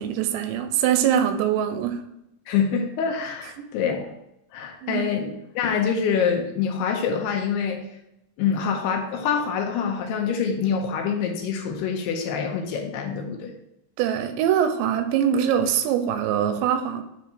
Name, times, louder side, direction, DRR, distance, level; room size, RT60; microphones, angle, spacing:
voice 1, 0.0-2.0 3.6-3.7 4.8-5.1 14.0-17.0, right 9 dB, 90° right, 7 dB, 2.9 m, -23 dB
voice 2, 2.5-4.1 4.5-7.8 8.4-13.5, left 6 dB, 80° left, 2 dB, 2.6 m, -25 dB
9.4 x 3.5 x 4.2 m, 0.84 s
omnidirectional pair, 5.0 m